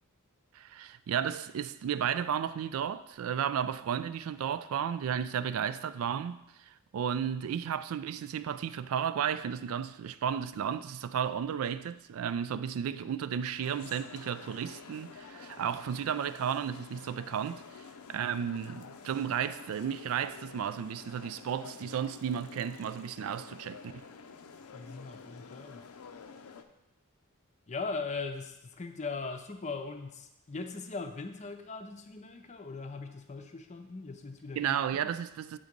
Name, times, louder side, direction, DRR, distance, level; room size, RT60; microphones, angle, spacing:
voice 1, 0.5-17.8 18.1-24.0 34.6-35.6, right 8 dB, 70° right, 0.3 m, -33 dB
sound 1, 13.6-26.6, left 5 dB, 85° left, 0.5 m, -49 dB
voice 2, 24.7-25.9 27.7-35.1, left 4 dB, 30° left, 0.6 m, -40 dB
8.3 x 3.7 x 5.2 m
head